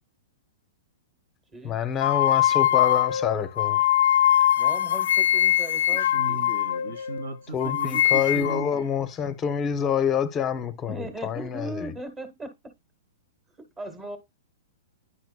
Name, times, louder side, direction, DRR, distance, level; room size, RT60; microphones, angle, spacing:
voice 1, 1.6-3.8 7.5-11.9, left 8 dB, 25° left, 0.6 m, -27 dB
sound 1, 2.0-7.3 7.6-8.7, left 12 dB, 75° left, 0.4 m, -22 dB
voice 2, 4.6-6.4 10.9-12.7 13.6-14.2, right 2 dB, 20° right, 1.3 m, -38 dB
voice 3, 5.9-8.9, right 3 dB, 80° right, 2.9 m, -36 dB
9.9 x 4.6 x 2.2 m
hypercardioid pair, 145°, 0 cm